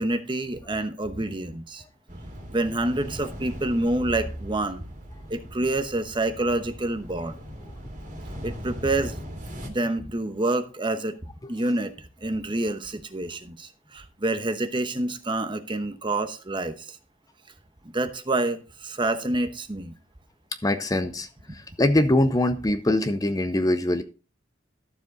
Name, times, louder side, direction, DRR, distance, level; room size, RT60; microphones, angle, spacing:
voice 1, 0.0-1.8 2.5-4.8 5.3-7.4 8.4-9.1 9.7-11.1 11.5-17.0 17.9-19.9, right 2 dB, 25° right, 1.0 m, -27 dB
sound 1, 2.1-9.7, equal, 40° right, 2.4 m, -39 dB
voice 2, 20.6-21.3 21.8-24.0, left 1 dB, 20° left, 0.6 m, -22 dB
13.0 x 7.2 x 4.0 m
head